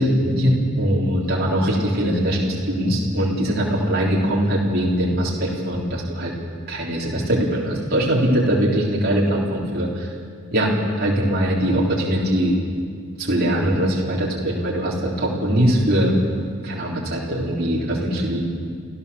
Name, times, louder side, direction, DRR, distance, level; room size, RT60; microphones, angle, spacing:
voice 1, 0.0-6.3 6.7-10.1 10.5-12.6 13.2-16.1 16.6-18.4, equal, 45° right, -5 dB, 3.7 m, -21 dB
29.5 x 15.0 x 7.0 m, 2.1 s
head